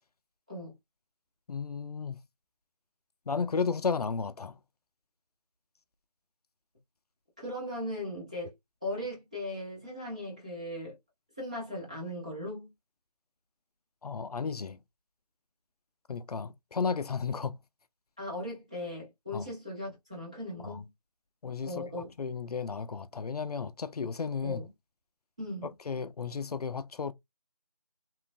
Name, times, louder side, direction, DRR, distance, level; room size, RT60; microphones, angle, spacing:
voice 1, 1.5-2.2 3.3-4.6 14.0-14.8 16.1-17.6 19.3-19.5 20.6-20.8 21.4-24.6 25.6-27.1, left 5 dB, 70° left, 0.4 m, -33 dB
voice 2, 7.4-8.5 8.8-10.9 11.4-12.7 18.2-20.9 21.6-22.1 24.4-24.6 25.4-25.7, left 1 dB, 10° right, 0.6 m, -38 dB
3.1 x 2.3 x 2.5 m
figure-of-eight pair, 165°, 21 cm